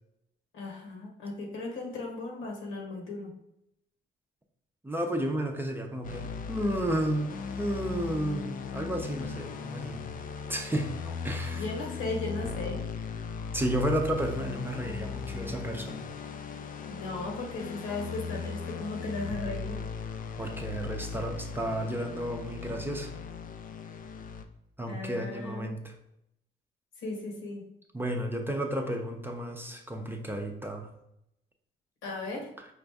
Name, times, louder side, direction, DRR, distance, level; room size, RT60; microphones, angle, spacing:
voice 1, 0.5-3.3 11.5-12.8 16.9-19.8 24.9-25.8 27.0-27.6 32.0-32.4, left 2 dB, 85° left, 0 dB, 1.3 m, -36 dB
voice 2, 4.8-7.3 7.6-10.1 10.5-11.6 13.5-16.1 20.4-23.1 24.8-25.9 27.9-30.9, right 1 dB, 10° right, 2 dB, 0.6 m, -32 dB
sound 1, 6.0-24.5, left 5 dB, 45° left, 0.4 m, -38 dB
5.0 x 2.5 x 3.4 m, 0.80 s
cardioid pair, 90°, 20 cm